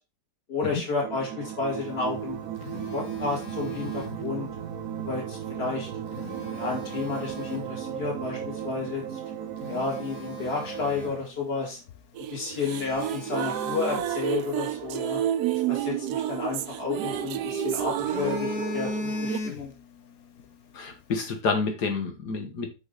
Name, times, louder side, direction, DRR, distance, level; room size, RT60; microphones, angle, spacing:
voice 1, 0.5-2.4 2.9-4.5 5.0-5.9 6.5-9.0 9.7-11.8 12.3-15.2 15.5-19.7, left 4 dB, 40° left, 2.7 m, -31 dB
sound 1, 1.0-11.2, right 9 dB, 65° right, 1.1 m, -36 dB
Telephone, 2.1-4.6 5.9-7.8 8.4-8.6 9.1-9.2 9.6-11.6 11.9-12.0 12.5-14.9 16.4-17.4 17.8-19.9 20.2-20.5, left 3 dB, 65° left, 1.4 m, -38 dB
sound 2, 12.2-19.4, right 11 dB, 80° right, 1.2 m, -30 dB
voice 2, 20.7-22.7, left 4 dB, 85° left, 2.0 m, -29 dB
6.1 x 6.0 x 3.9 m
omnidirectional pair, 1.7 m